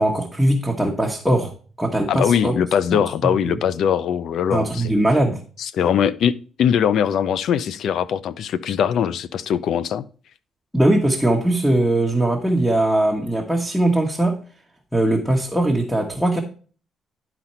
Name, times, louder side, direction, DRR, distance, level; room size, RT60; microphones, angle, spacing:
voice 1, 0.0-1.5 1.8-2.5 2.9-3.0 3.4-3.6 4.5-5.4 10.7-14.4 14.9-16.4, right 1 dB, ahead, 1.3 m, -20 dB
voice 2, 2.1-4.9 5.6-10.0, left 8 dB, 70° left, 0.5 m, -21 dB
11.0 x 4.1 x 4.3 m
cardioid pair, 90°, 0 cm